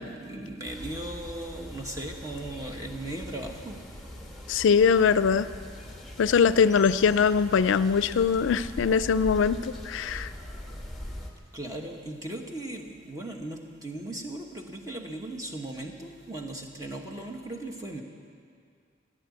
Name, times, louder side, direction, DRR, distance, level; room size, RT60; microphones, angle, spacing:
voice 1, 0.0-3.8 11.5-18.0, right 1 dB, 15° right, 2 dB, 1.2 m, -37 dB
sound 1, 0.6-11.3, left 1 dB, ahead, 1.3 m, -41 dB
voice 2, 4.5-5.5 6.2-10.3, left 6 dB, 75° left, 14 dB, 0.4 m, -22 dB
16.0 x 10.0 x 8.4 m, 2.2 s
head